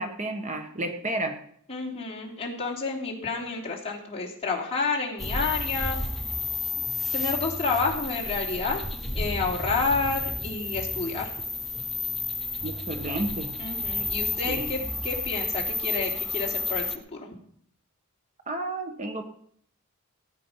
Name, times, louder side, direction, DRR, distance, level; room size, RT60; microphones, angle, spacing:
voice 1, 0.0-1.3 12.6-13.5 14.4-14.7 18.5-19.2, right 1 dB, 35° right, 5 dB, 1.4 m, -31 dB
voice 2, 1.7-6.0 7.1-8.8 9.2-11.3 13.6-17.2, left 4 dB, 30° left, -2 dB, 3.3 m, -29 dB
sound 1, 5.2-17.0, left 3 dB, ahead, 1.0 m, -31 dB
18.0 x 8.9 x 5.7 m, 0.63 s
head